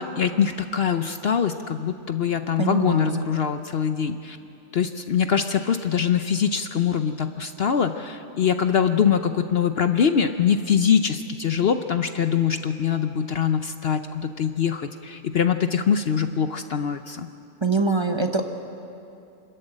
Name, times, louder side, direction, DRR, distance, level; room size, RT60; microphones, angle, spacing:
voice 1, 0.0-4.4 4.7-17.3, left 7 dB, 55° left, 8 dB, 0.8 m, -23 dB
voice 2, 2.6-3.3 17.6-18.5, right 3 dB, 25° right, 5 dB, 1.0 m, -24 dB
26.5 x 13.5 x 9.0 m, 2.7 s
omnidirectional pair, 1.3 m